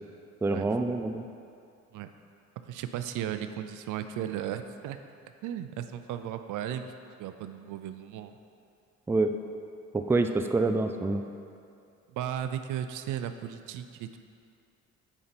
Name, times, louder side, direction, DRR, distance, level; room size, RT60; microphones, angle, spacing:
voice 1, 0.4-1.2 9.1-9.3 9.9-11.2, right 3 dB, 10° right, 7 dB, 0.3 m, -26 dB
voice 2, 2.7-5.0 5.4-6.9 7.2-8.3 12.1-14.2, right 10 dB, 85° right, 9 dB, 0.5 m, -35 dB
7.0 x 5.1 x 4.4 m, 2.5 s
cardioid pair, 90°, 30 cm